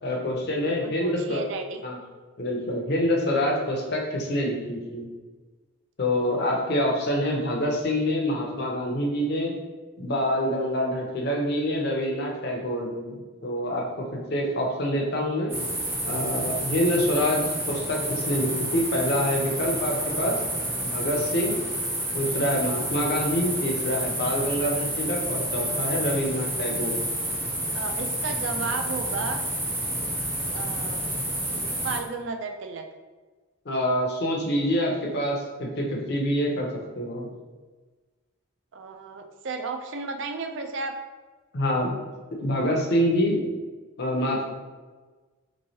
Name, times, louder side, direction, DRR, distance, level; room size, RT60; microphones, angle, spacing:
voice 1, 0.0-1.4 1.8-2.0 2.4-5.1 6.0-9.5 10.0-15.6 16.0-20.4 20.8-21.6 22.1-27.0 33.7-36.7 37.0-37.3 41.5-41.9 42.4-43.4 44.0-44.4, equal, 50° left, 0 dB, 0.6 m, -26 dB
voice 2, 0.6-1.8 27.7-29.4 30.5-31.0 31.8-32.8 38.7-40.9, right 4 dB, 60° right, 6 dB, 0.3 m, -33 dB
sound 1, 15.5-32.0, right 1 dB, 10° right, 0.6 m, -29 dB
3.4 x 3.1 x 2.7 m, 1.3 s
head